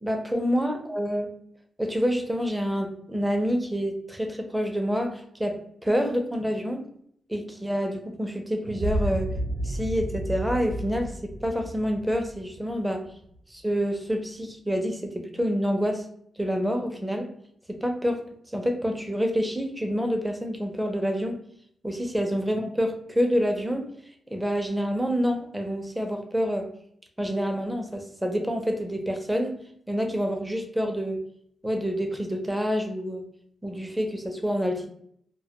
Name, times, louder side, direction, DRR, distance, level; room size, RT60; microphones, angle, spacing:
voice 1, 0.0-1.3 1.8-6.8 7.3-9.3 9.6-13.0 13.5-16.0 16.4-17.3 17.7-18.2 18.5-21.4 21.8-23.9 24.3-26.7 27.2-29.6 29.9-31.2 31.6-33.2 33.6-34.9, equal, 5° right, 4 dB, 0.5 m, -27 dB
sound 1, 8.6-13.4, right 1 dB, 60° right, 0.5 m, -32 dB
2.1 x 2.1 x 2.8 m, 0.66 s
cardioid pair, 90°, 0 cm